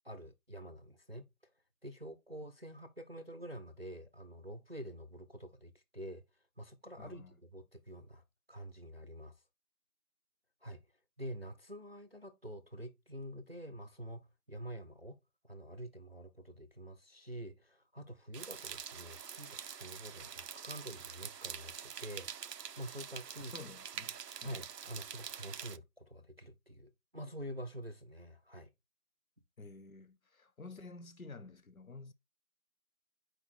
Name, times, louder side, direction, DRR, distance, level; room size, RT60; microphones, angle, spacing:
voice 1, 0.0-1.5 1.8-9.4 10.6-10.8 11.2-15.2 15.4-22.3 22.8-23.5 24.4-28.7, equal, 40° right, 0.6 m, -47 dB
voice 2, 7.0-7.4 23.4-24.6 29.6-32.1, left 3 dB, 60° left, 0.8 m, -51 dB
sound 1, 18.3-25.8, right 7 dB, 90° right, 0.6 m, -46 dB
4.6 x 4.5 x 4.5 m
figure-of-eight pair, 165°, 47 cm